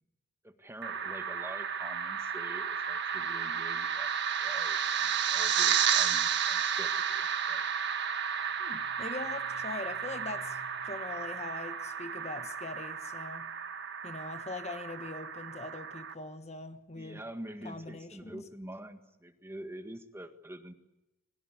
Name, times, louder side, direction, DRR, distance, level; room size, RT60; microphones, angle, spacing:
voice 1, 0.4-4.1 4.4-7.7 17.0-20.7, right 1 dB, 10° right, 1.7 m, -46 dB
sound 1, 0.8-16.1, right 8 dB, 60° right, 1.6 m, -32 dB
sound 2, 8.4-12.3, left 2 dB, 65° left, 7.0 m, -58 dB
voice 2, 8.6-13.5 14.0-17.2 17.6-18.4, left 2 dB, 35° left, 1.4 m, -42 dB
29.0 x 21.5 x 8.3 m
head